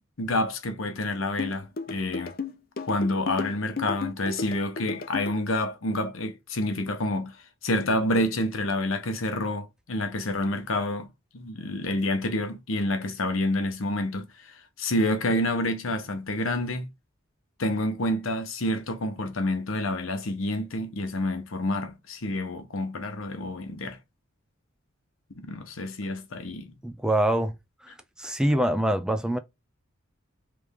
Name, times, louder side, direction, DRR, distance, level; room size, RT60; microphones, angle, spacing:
voice 1, 0.2-2.3 2.9-7.4 7.6-11.1 11.3-16.9 17.6-24.0 25.4-26.8, left 1 dB, 80° left, 1.0 m, -28 dB
sound 1, 1.4-5.4, left 4 dB, 45° left, 0.6 m, -33 dB
voice 2, 26.8-27.5 27.8-29.4, right 1 dB, 5° right, 0.3 m, -25 dB
3.4 x 3.1 x 3.6 m
head